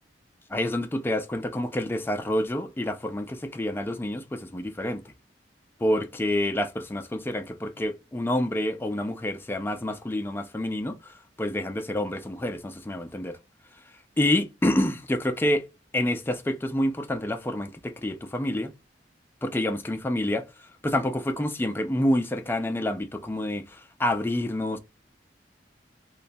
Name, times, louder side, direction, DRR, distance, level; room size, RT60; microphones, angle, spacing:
voice 1, 0.5-5.0 5.8-11.1 11.4-13.4 14.2-15.7 15.9-18.7 19.4-20.4 20.8-24.8, left 1 dB, 10° left, 0.3 m, -28 dB
3.0 x 2.2 x 2.6 m
head